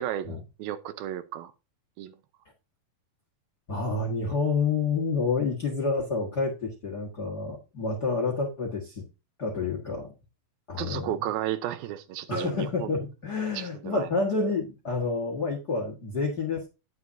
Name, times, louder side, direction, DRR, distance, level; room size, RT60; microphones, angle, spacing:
voice 1, 0.0-1.5 2.0-2.2 10.7-13.0 13.5-14.1, right 12 dB, 85° right, 2.6 m, -33 dB
voice 2, 3.7-9.0 9.4-10.1 10.7-11.1 12.3-16.7, left 4 dB, 40° left, 1.4 m, -29 dB
9.5 x 9.4 x 2.7 m
omnidirectional pair, 4.2 m